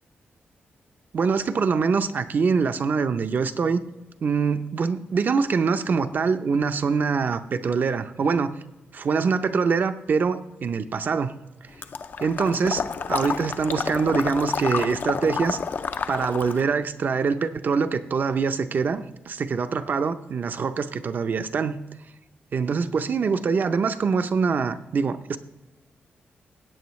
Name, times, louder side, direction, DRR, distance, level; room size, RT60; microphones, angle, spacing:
voice 1, 1.1-3.8 4.2-8.5 8.9-11.3 12.2-12.8 13.1-15.6 16.1-21.8 22.5-25.4, right 5 dB, 50° right, 10 dB, 0.6 m, -24 dB
Water / Liquid, 11.8-16.7, left 5 dB, 55° left, 0.5 m, -29 dB
16.5 x 8.5 x 3.1 m, 1.0 s
wide cardioid pair, 115°, 4 cm